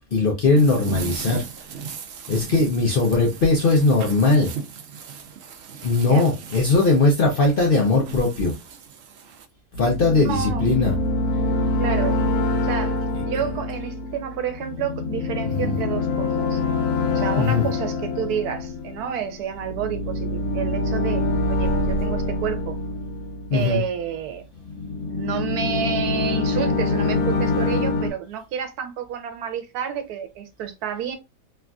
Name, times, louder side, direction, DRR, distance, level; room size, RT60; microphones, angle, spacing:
voice 1, 0.1-1.4 2.3-4.5 5.8-8.5 9.8-11.0 13.1-13.2 15.4-15.7 17.3-17.7 23.5-23.8, left 3 dB, 60° left, 0.5 m, -19 dB
sound 1, 0.6-9.5, right 6 dB, 70° right, 0.6 m, -37 dB
sound 2, 9.7-24.0 24.6-28.1, left 2 dB, 80° left, 1.2 m, -25 dB
voice 2, 10.2-10.7 11.8-12.2 12.6-16.6 17.1-21.2 21.5-22.8 23.5-24.4 25.1-31.2, right 8 dB, 85° right, 1.2 m, -30 dB
3.2 x 2.5 x 2.2 m
omnidirectional pair, 1.6 m